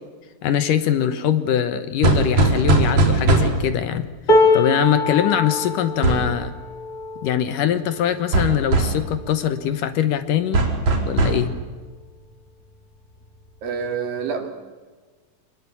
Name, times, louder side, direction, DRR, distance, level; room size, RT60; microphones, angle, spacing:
voice 1, 0.4-4.1 4.5-6.5 7.2-10.6 11.1-11.5, left 9 dB, 70° left, 11 dB, 2.5 m, -22 dB
sound 1, 2.0-3.8 6.0-6.3 8.3-9.1 10.5-11.5, right 2 dB, 50° right, 4.5 m, -19 dB
sound 2, 4.3-10.4 11.0-11.2 11.5-12.3 13.2-13.3, left 2 dB, 25° left, 3.4 m, -24 dB
voice 2, 13.6-14.5, right 6 dB, 70° right, 4 dB, 4.4 m, -27 dB
26.0 x 20.5 x 8.4 m, 1.4 s
omnidirectional pair, 4.3 m